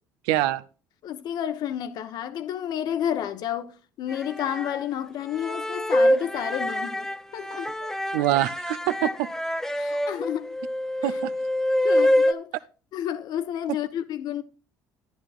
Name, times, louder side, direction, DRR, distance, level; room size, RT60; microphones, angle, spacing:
voice 1, 0.3-0.6 7.8-9.3 11.0-11.3, right 15 dB, 85° right, 0.5 m, -25 dB
voice 2, 1.0-7.7 9.0-9.1 9.8-10.6 11.0-11.2 11.8-12.5 12.9-14.4, left 10 dB, 65° left, 1.0 m, -31 dB
sound 1, 4.1-4.8 5.3-12.3, left 1 dB, 5° left, 0.6 m, -25 dB
11.0 x 10.0 x 2.4 m
supercardioid pair, 75°, 7 cm